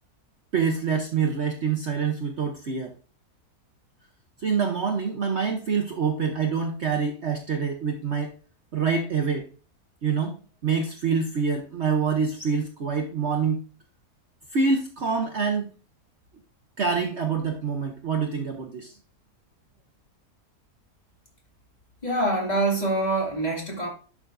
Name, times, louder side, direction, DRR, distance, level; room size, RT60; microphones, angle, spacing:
voice 1, 0.5-2.9 4.4-8.3 8.7-9.5 10.0-10.4 10.6-13.6 14.5-15.7 16.8-18.9, right 5 dB, 50° right, 1.1 m, -26 dB
voice 2, 22.0-23.9, right 2 dB, 25° left, 2.4 m, -25 dB
11.5 x 6.0 x 2.6 m
omnidirectional pair, 1.7 m